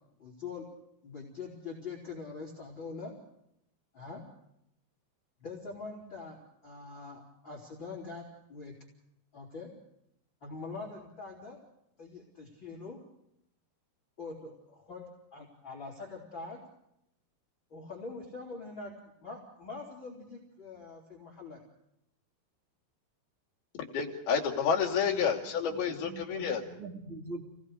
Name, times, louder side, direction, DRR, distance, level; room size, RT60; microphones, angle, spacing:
voice 1, 0.2-0.7 1.0-3.1 3.9-4.2 5.4-6.4 6.6-8.7 9.3-9.7 10.4-11.6 12.0-13.0 14.2-16.6 17.7-21.6, left 4 dB, 30° left, -2 dB, 4.0 m, -43 dB
voice 2, 23.8-26.6, left 6 dB, 70° left, 2 dB, 4.3 m, -29 dB
voice 3, 25.7-27.5, right 2 dB, 20° right, 3 dB, 1.9 m, -44 dB
29.5 x 18.5 x 5.0 m, 0.78 s
omnidirectional pair, 4.7 m